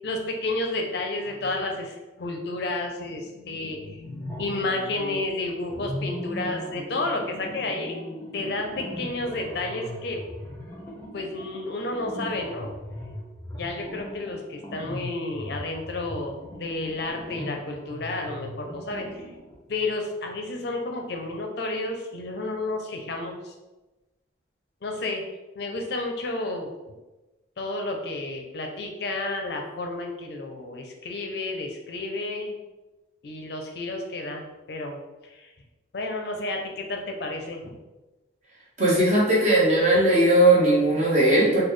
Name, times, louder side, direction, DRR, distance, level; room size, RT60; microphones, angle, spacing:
voice 1, 0.0-8.0 8.3-10.2 11.1-12.7 13.5-19.3 19.7-23.5 24.8-25.2 25.5-27.0 27.6-32.6 33.2-35.5 35.9-37.8, left 2 dB, 55° left, 3 dB, 0.5 m, -31 dB
sound 1, 3.9-5.3 5.7-19.6, left 1 dB, 10° left, 0.8 m, -39 dB
voice 2, 38.8-41.6, right 1 dB, 35° right, -7 dB, 1.2 m, -18 dB
4.0 x 2.3 x 3.1 m, 1.1 s
head